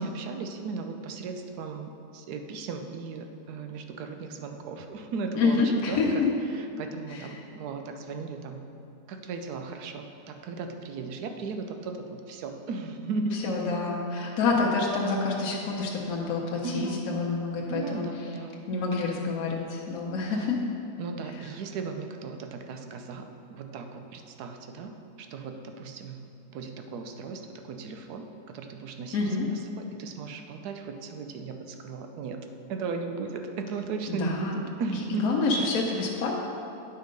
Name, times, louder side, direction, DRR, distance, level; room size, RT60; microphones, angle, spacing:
voice 1, 0.0-6.2 6.5-8.6 9.1-13.4 14.1-14.4 16.6-17.1 17.7-19.0 20.3-20.5 21.0-24.9 25.2-26.2 26.5-35.3, right 4 dB, 75° right, 5 dB, 1.2 m, -36 dB
voice 2, 5.4-6.3 7.1-7.3 13.4-18.0 18.7-20.6 29.1-29.4 34.1-34.6 35.2-36.4, left 4 dB, 65° left, -2 dB, 1.3 m, -27 dB
9.3 x 4.7 x 5.2 m, 2.8 s
omnidirectional pair, 1.8 m